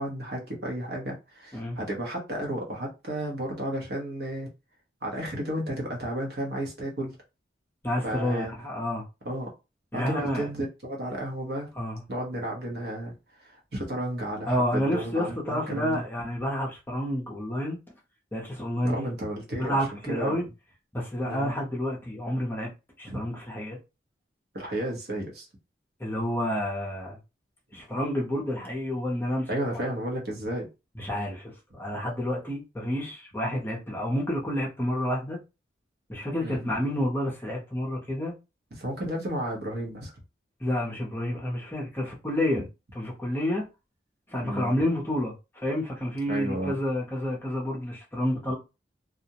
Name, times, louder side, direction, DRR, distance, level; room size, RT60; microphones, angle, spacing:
voice 1, 0.0-4.5 5.0-7.2 8.0-8.5 9.2-9.5 9.9-11.7 12.1-13.1 13.4-16.0 18.8-20.5 21.3-21.5 23.1-23.3 24.5-25.5 29.5-30.7 36.4-36.6 38.7-40.1 44.4-44.8 46.3-46.8, right 1 dB, 60° right, 0.8 m, -33 dB
voice 2, 7.8-9.0 9.9-10.5 11.8-12.0 14.5-17.8 18.3-19.1 19.6-20.4 20.9-22.7 23.0-23.8 26.0-27.2 27.7-29.5 31.0-35.4 36.1-38.3 40.6-42.6 43.0-43.6 44.3-48.5, left 1 dB, 10° left, 0.6 m, -29 dB
2.4 x 2.0 x 2.7 m
head